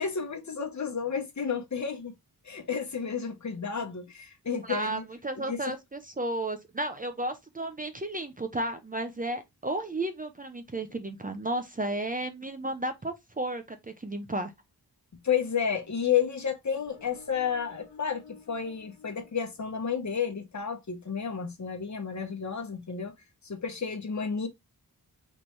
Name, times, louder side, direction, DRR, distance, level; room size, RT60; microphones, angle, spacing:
voice 1, 0.0-2.1 2.4-5.0 5.5-5.6 15.2-23.1 23.4-24.5, left 7 dB, 45° left, 1.0 m, -31 dB
voice 2, 4.6-14.5, right 1 dB, 20° right, 0.6 m, -33 dB
sound 1, 16.8-20.4, left 4 dB, 75° left, 1.1 m, -53 dB
4.3 x 3.2 x 3.1 m
wide cardioid pair, 125°, 38 cm